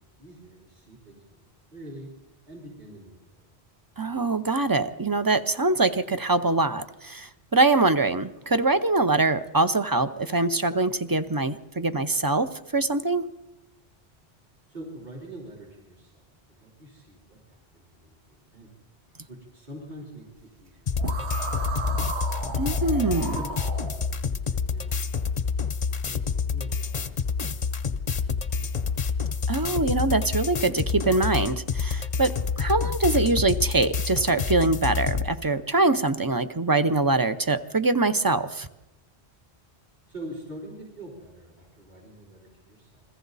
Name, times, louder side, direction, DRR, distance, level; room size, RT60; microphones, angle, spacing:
voice 1, 0.2-2.1 2.5-3.5 14.7-18.7 19.3-22.2 23.4-23.9 24.3-28.0 28.3-29.0 40.1-43.0, right 1 dB, 45° right, -4 dB, 4.0 m, -45 dB
voice 2, 4.0-13.3 22.6-23.4 29.5-38.7, right 3 dB, 25° right, 11 dB, 0.6 m, -24 dB
sound 1, 20.9-35.3, left 5 dB, 40° left, 0.8 m, -28 dB
sound 2, 21.0-24.2, right 2 dB, 80° right, 1.7 m, -33 dB
29.5 x 22.0 x 4.1 m, 0.99 s
omnidirectional pair, 1.1 m